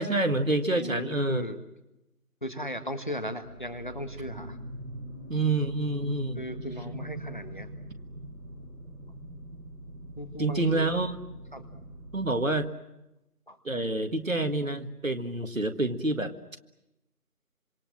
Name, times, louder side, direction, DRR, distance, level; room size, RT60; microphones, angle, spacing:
voice 1, 0.0-1.4 5.3-6.4 10.4-11.2 12.1-12.7 13.7-16.3, right 2 dB, 55° right, 8 dB, 2.0 m, -27 dB
voice 2, 0.7-1.6 2.4-4.6 6.3-7.7 10.2-10.9 11.5-11.6 13.5-13.6, equal, 30° left, 10 dB, 1.6 m, -37 dB
sound 1, 3.4-12.5, right 1 dB, 30° right, 5.5 m, -43 dB
26.5 x 25.5 x 7.6 m, 0.89 s
figure-of-eight pair, 170°, 46 cm